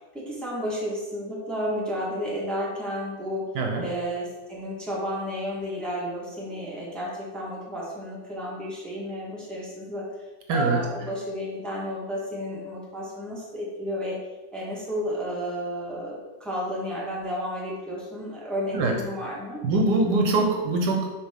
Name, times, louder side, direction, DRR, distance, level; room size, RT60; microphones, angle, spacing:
voice 1, 0.1-3.5 3.8-10.1 10.5-14.2 14.5-19.7, equal, ahead, -5 dB, 1.2 m, -32 dB
voice 2, 10.5-10.8 18.7-18.9 19.6-21.2, right 2 dB, 70° right, 2 dB, 1.3 m, -23 dB
7.0 x 3.9 x 3.6 m, 1.1 s
omnidirectional pair, 1.9 m